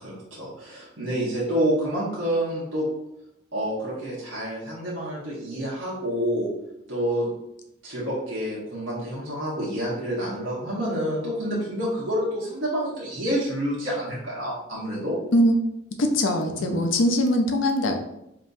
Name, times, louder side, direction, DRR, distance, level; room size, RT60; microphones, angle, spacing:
voice 1, 0.0-2.9 3.5-6.5 6.9-7.3 7.8-15.1 16.6-16.9, equal, 80° right, -7 dB, 1.3 m, -28 dB
voice 2, 16.0-17.9, left 1 dB, 80° left, 4 dB, 0.6 m, -21 dB
5.3 x 2.9 x 2.7 m, 0.84 s
head